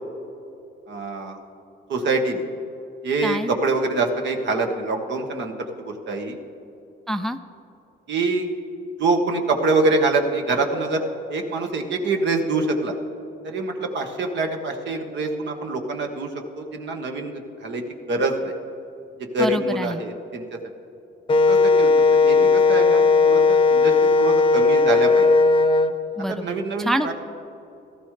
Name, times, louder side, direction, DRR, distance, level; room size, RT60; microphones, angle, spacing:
voice 1, 0.9-1.4 1.9-2.5 3.0-6.4 8.1-8.5 9.0-11.0 11.3-12.9 13.4-16.3 16.6-17.8 18.1-18.5 19.2-20.6 21.5-25.3 26.3-27.1, right 3 dB, 65° right, 3 dB, 1.4 m, -25 dB
voice 2, 7.1-7.4 19.4-20.0 26.2-27.1, equal, ahead, 10 dB, 0.4 m, -26 dB
Wind instrument woodwind instrument, 21.3-25.9, left 3 dB, 25° left, 0.8 m, -16 dB
17.0 x 13.5 x 3.3 m, 2.8 s
cardioid pair, 90°, 20 cm